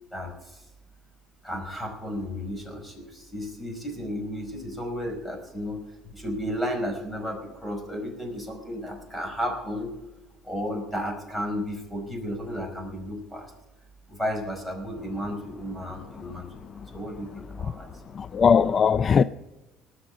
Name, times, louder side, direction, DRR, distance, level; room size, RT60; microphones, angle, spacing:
voice 1, 0.1-0.6 1.4-5.8 6.1-9.9 10.4-13.5 14.1-17.9, equal, 5° left, 5.0 m, -33 dB
voice 2, 18.2-19.2, left 6 dB, 35° left, 0.4 m, -19 dB
19.0 x 6.6 x 8.4 m
cardioid pair, 110°, 0 cm